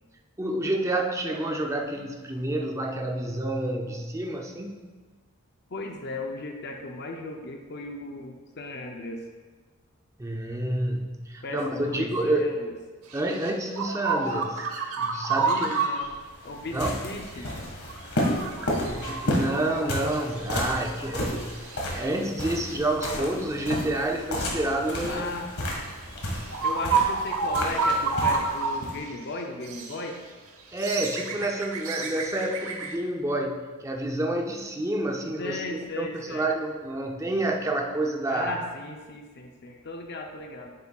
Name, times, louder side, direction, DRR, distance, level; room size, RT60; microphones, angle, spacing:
voice 1, 0.4-4.8 10.2-12.6 13.1-14.7 14.9-15.7 16.7-17.0 18.7-21.5 21.9-25.3 30.7-38.5, right 1 dB, 15° right, 3 dB, 0.5 m, -29 dB
voice 2, 5.7-9.2 11.4-12.7 15.4-16.1 16.4-17.5 25.0-25.5 26.6-30.2 35.4-36.5 38.3-40.7, left 2 dB, 50° left, 2 dB, 0.6 m, -36 dB
sound 1, 13.1-16.1 17.4-17.5 17.8-20.5 20.8-20.9 21.4-22.0 22.7-22.8 23.6-23.8 25.0-25.2 25.9-26.0 26.3-28.8 29.1-29.2 29.6-30.0 30.6-33.0, right 4 dB, 75° right, 0.9 m, -29 dB
sound 2, 16.0-29.0, left 1 dB, 75° left, 1.7 m, -32 dB
9.6 x 7.2 x 2.3 m, 1.4 s
head